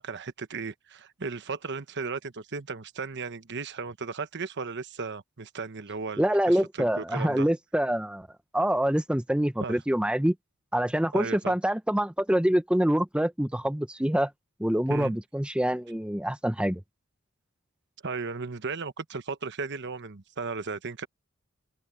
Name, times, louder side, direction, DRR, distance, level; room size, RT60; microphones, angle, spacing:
voice 1, 0.0-7.5 9.6-9.8 11.1-11.6 14.9-15.1 18.0-21.1, right 4 dB, 55° right, 1.1 m, -35 dB
voice 2, 6.2-8.3 8.5-10.3 10.7-14.3 14.6-16.8, right 1 dB, 5° right, 0.7 m, -25 dB
head